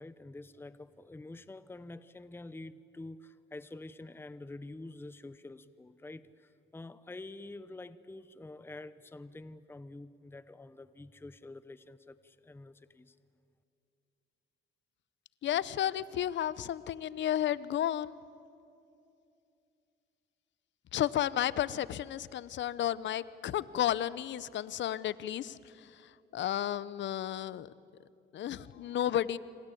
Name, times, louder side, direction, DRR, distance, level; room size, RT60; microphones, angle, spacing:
voice 1, 0.0-13.1, left 2 dB, 10° left, 15 dB, 0.8 m, -47 dB
voice 2, 15.4-18.2 20.9-27.7 28.3-29.4, left 11 dB, 65° left, 18 dB, 0.8 m, -32 dB
27.0 x 25.5 x 8.5 m, 2.6 s
cardioid pair, 90°, 20 cm